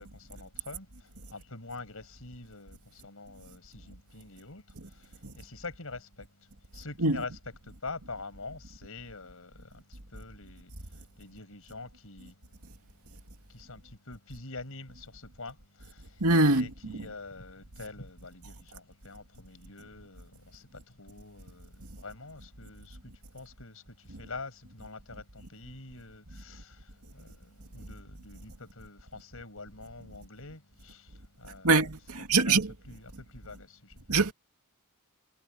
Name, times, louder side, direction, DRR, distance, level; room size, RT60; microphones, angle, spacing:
voice 1, 0.0-12.3 13.5-31.8 32.2-32.6 32.9-34.3, left 3 dB, 70° left, 5.9 m, -46 dB
voice 2, 16.2-16.7 31.6-32.7 34.1-34.3, right 3 dB, 80° right, 2.4 m, -23 dB
head